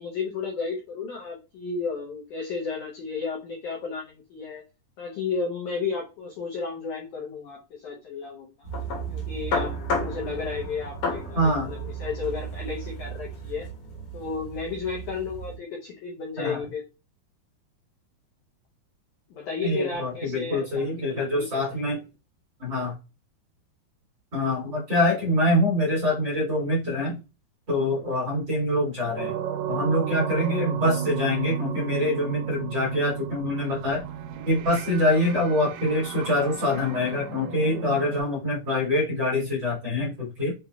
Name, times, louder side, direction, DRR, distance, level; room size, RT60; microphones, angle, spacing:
voice 1, 0.0-4.6 5.0-8.7 9.1-13.7 14.1-16.8 19.3-21.6, left 5 dB, 85° left, -1 dB, 1.7 m, -33 dB
sound 1, 8.6-15.6, equal, 65° left, 1.7 m, -33 dB
voice 2, 11.4-11.7 16.4-16.6 19.6-22.0 22.6-23.0 24.3-27.2 27.7-29.3 29.7-34.0 34.5-40.5, left 1 dB, 40° right, -7 dB, 2.1 m, -25 dB
sound 2, 29.2-38.2, right 9 dB, 85° right, 2.6 m, -33 dB
6.4 x 3.0 x 2.3 m, 0.30 s
omnidirectional pair, 4.6 m